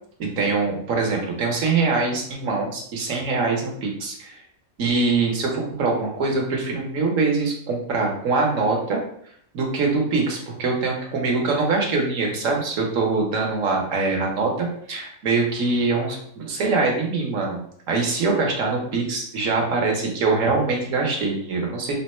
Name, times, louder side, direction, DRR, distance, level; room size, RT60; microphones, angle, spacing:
voice 1, 0.4-4.4 4.8-9.0 9.5-17.6 17.9-21.9, right 3 dB, 65° right, 0 dB, 1.2 m, -23 dB
3.8 x 2.1 x 4.2 m, 0.66 s
omnidirectional pair, 1.5 m